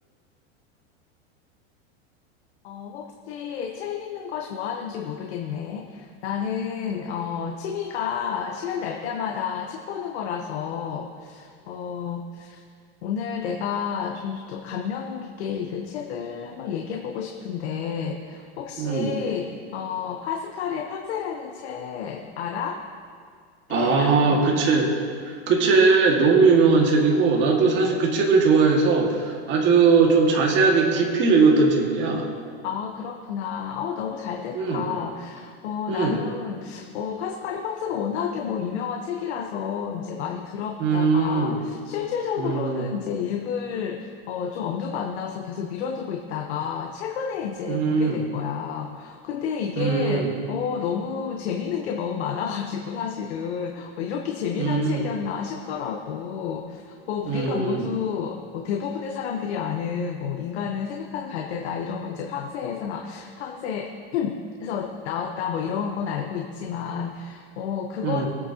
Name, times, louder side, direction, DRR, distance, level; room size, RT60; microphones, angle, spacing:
voice 1, 2.6-12.6 13.0-22.8 23.7-24.6 32.6-68.3, left 7 dB, 85° left, 2 dB, 1.1 m, -30 dB
voice 2, 18.8-19.2 23.7-24.9 25.3-32.3 34.5-34.9 35.9-36.2 40.8-41.5 42.4-42.9 47.7-48.2 49.8-50.3 54.6-55.0 57.3-57.9 68.0-68.3, right 4 dB, 35° right, 0 dB, 2.0 m, -20 dB
20.0 x 9.0 x 2.9 m, 2.1 s
supercardioid pair, 150°, 32 cm